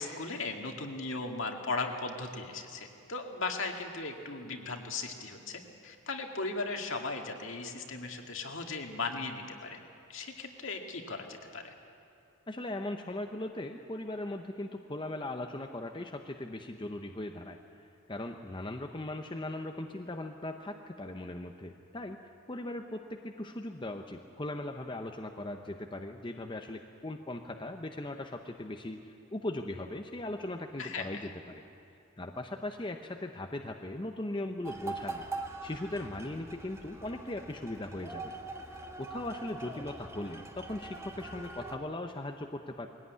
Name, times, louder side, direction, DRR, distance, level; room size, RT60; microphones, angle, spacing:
voice 1, 0.0-9.8 10.1-11.7 30.8-31.3, left 3 dB, 60° left, 3 dB, 2.1 m, -37 dB
voice 2, 12.5-17.6 18.1-22.2 22.5-31.5 32.2-35.2 35.6-38.3 39.0-42.9, left 1 dB, 20° left, 4 dB, 0.7 m, -39 dB
sound 1, 34.6-41.8, right 3 dB, 15° right, 1.4 m, -43 dB
21.5 x 17.0 x 9.6 m, 2.7 s
head